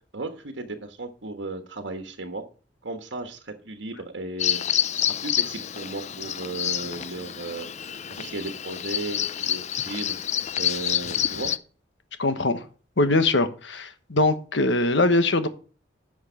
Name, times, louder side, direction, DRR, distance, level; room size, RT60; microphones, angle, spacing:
voice 1, 0.1-2.4 2.8-4.6 4.9-7.7 8.1-10.2 10.5-11.5, right 2 dB, 85° right, 5 dB, 1.4 m, -35 dB
Bird vocalization bird call bird song, 4.4-11.6, left 10 dB, 40° left, 0.5 m, -28 dB
voice 2, 12.2-12.6 13.0-15.5, left 2 dB, 85° left, 10 dB, 1.3 m, -22 dB
10.5 x 6.5 x 5.1 m, 0.38 s
head